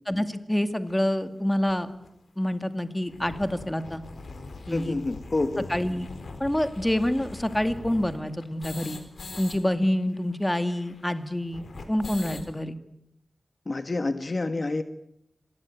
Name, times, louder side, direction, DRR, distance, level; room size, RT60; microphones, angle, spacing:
voice 1, 0.1-1.9 2.4-4.0 4.7-5.0 5.7-6.1 6.4-9.0 9.4-12.8, left 1 dB, 10° left, 9 dB, 2.2 m, -27 dB
sound 1, 0.9-1.0 1.7-1.8 2.0-2.1 2.4-2.5 2.9-9.6 9.8-9.9 10.1-12.5, left 3 dB, 85° left, 4.1 m, -42 dB
voice 2, 4.7-5.7 13.7-14.8, left 2 dB, 45° left, 10 dB, 1.5 m, -28 dB
26.5 x 20.0 x 9.2 m, 0.81 s
wide cardioid pair, 75°, 0 cm